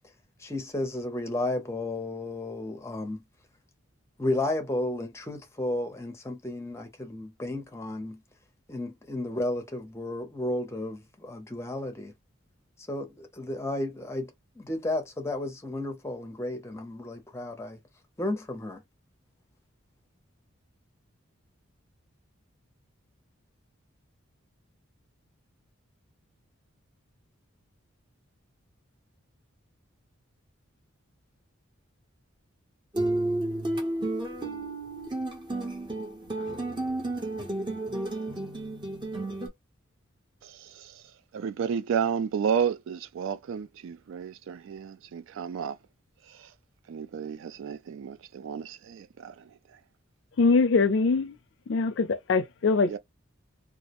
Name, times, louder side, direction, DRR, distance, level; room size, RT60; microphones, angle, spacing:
voice 1, 0.4-3.2 4.2-8.2 8.7-12.1 12.9-14.3 14.6-17.8 18.2-18.8, left 1 dB, 15° left, 0.5 m, -33 dB
sound 1, 32.9-39.5, right 2 dB, 20° right, 0.7 m, -31 dB
voice 2, 40.4-41.0 41.3-45.8 46.4-46.5 46.9-49.4 52.9-53.0, right 7 dB, 65° right, 0.3 m, -32 dB
voice 3, 50.4-51.4 51.7-53.0, left 4 dB, 60° left, 0.4 m, -23 dB
2.3 x 2.0 x 2.8 m
head